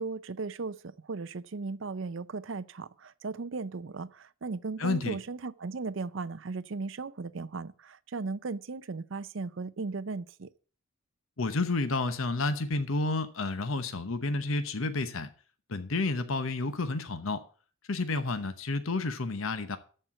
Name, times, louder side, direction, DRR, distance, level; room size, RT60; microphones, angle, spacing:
voice 1, 0.0-10.5, right 4 dB, 65° right, 0.6 m, -37 dB
voice 2, 4.8-5.2 11.4-15.3 15.7-17.4 17.9-19.8, left 3 dB, 75° left, 1.0 m, -30 dB
13.5 x 4.5 x 7.6 m
head